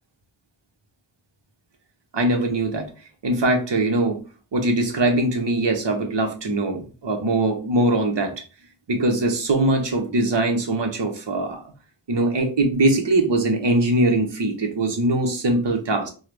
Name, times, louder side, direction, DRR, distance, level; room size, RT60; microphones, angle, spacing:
voice 1, 2.1-2.9 3.2-4.2 4.5-8.3 8.9-11.6 12.1-16.1, right 2 dB, 65° right, 4 dB, 1.1 m, -21 dB
4.6 x 2.4 x 3.3 m, 0.36 s
cardioid pair, 45°, 45 cm